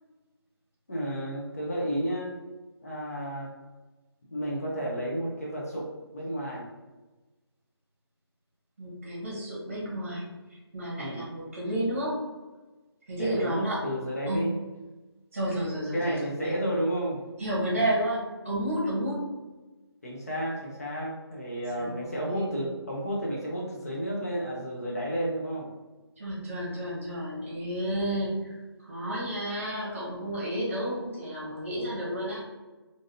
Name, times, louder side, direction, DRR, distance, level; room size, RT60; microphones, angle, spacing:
voice 1, 0.9-2.3 2.8-3.5 4.3-6.7 11.0-11.2 13.2-14.5 15.9-17.2 20.0-25.7, equal, 35° left, -3 dB, 0.7 m, -31 dB
voice 2, 8.8-10.2 10.5-12.2 13.1-13.8 14.3-14.5 15.3-16.2 16.4-16.6 17.4-19.3 21.7-22.7 26.2-32.4, right 1 dB, 30° right, -6 dB, 0.9 m, -31 dB
3.1 x 2.6 x 2.5 m, 1.2 s
figure-of-eight pair, 175°, 14 cm